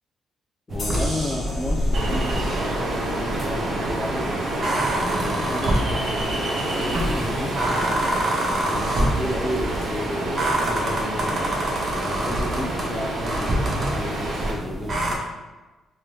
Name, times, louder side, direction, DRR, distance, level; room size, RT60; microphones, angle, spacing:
voice 1, 0.7-4.4 5.0-8.1 8.6-11.6 12.0-15.3, left 1 dB, 25° left, 0 dB, 0.4 m, -33 dB
sound 1, 0.7-15.2, right 1 dB, 45° right, 0.7 m, -27 dB
sound 2, 0.8-4.1, left 2 dB, 45° left, 1.1 m, -39 dB
Ocean, 1.9-14.5, right 1 dB, 80° right, 1.0 m, -28 dB
3.2 x 2.7 x 3.8 m, 1.2 s
cardioid pair, 90°, 0 cm